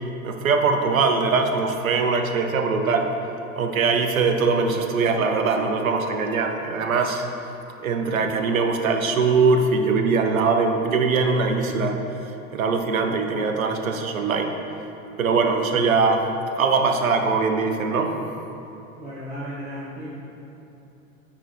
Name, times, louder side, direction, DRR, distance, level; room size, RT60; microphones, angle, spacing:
voice 1, 0.2-3.1 3.6-7.2 7.8-12.0 12.5-14.5 15.2-16.3 16.6-18.1, right 4 dB, 70° right, 5 dB, 0.9 m, -21 dB
voice 2, 19.0-20.1, equal, 15° right, -8 dB, 1.4 m, -34 dB
9.7 x 4.2 x 4.9 m, 2.9 s
figure-of-eight pair, 90°, 42 cm